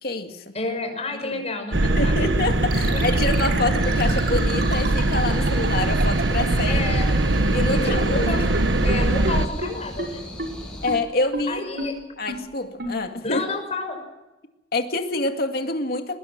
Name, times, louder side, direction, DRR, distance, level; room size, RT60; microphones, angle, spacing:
voice 1, 0.0-0.5 1.2-1.4 2.0-6.8 7.5-8.3 10.8-11.8 12.2-13.4 14.7-16.2, left 2 dB, 55° left, 5 dB, 2.2 m, -27 dB
voice 2, 0.5-2.3 6.7-7.1 7.7-8.4 8.8-10.3 11.5-12.0 13.2-14.0, left 2 dB, 35° left, 4 dB, 5.9 m, -30 dB
sound 1, 1.7-9.5, right 2 dB, 90° right, 1.1 m, -21 dB
sound 2, 2.7-7.9 8.2-8.3 8.5-8.6 8.9-9.0 9.2-9.3 9.6-9.7 10.0-10.1 10.4-10.5 10.9-11.0 11.3-11.4 11.8-11.9 12.3-12.4 12.8-12.9, right 2 dB, 60° right, 5.6 m, -30 dB
sound 3, 3.8-11.0, left 1 dB, 5° left, 5.9 m, -38 dB
23.0 x 20.5 x 6.0 m, 1.0 s
head